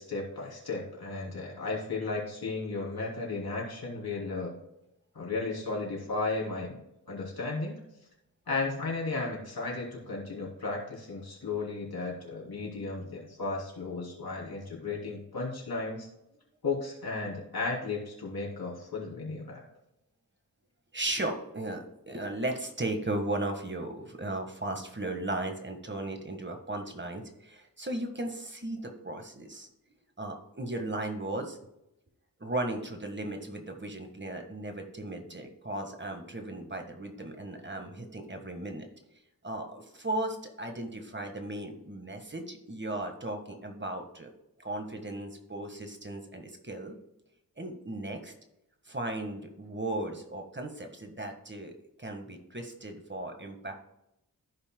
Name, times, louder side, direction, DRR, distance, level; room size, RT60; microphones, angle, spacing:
voice 1, 0.0-4.5 5.1-6.8 7.1-7.8 8.5-16.1 16.6-19.6, left 3 dB, 85° left, -3 dB, 3.2 m, -34 dB
voice 2, 20.9-29.7 30.2-31.6 32.4-38.9 39.4-44.3 44.6-46.9 47.6-48.3 48.8-53.7, right 2 dB, 30° right, 4 dB, 1.5 m, -36 dB
15.0 x 5.6 x 2.2 m, 0.85 s
wide cardioid pair, 75°, 36 cm